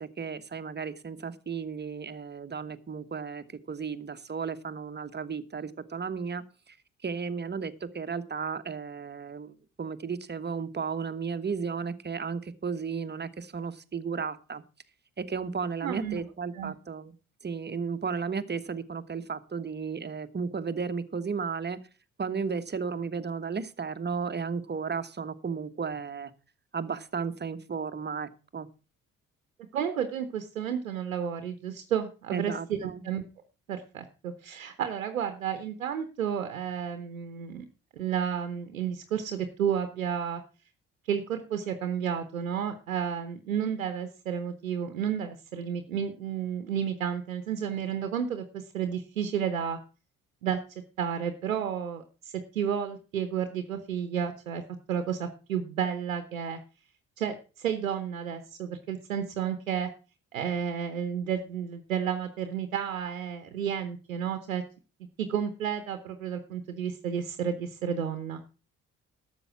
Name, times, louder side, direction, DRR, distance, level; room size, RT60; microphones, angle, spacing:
voice 1, 0.0-6.8 7.0-14.6 15.2-17.1 17.4-21.8 22.2-26.3 26.7-28.7 32.3-33.0, right 5 dB, 25° right, 1.2 m, -34 dB
voice 2, 15.8-16.2 16.5-16.7 29.7-33.2 33.7-37.7 37.9-40.4 41.1-49.8 50.4-50.6 51.0-54.6 54.9-56.6 57.2-59.9 60.3-64.6 65.2-68.5, right 8 dB, 85° right, 0.9 m, -31 dB
12.5 x 7.2 x 5.8 m
figure-of-eight pair, 45°, 39 cm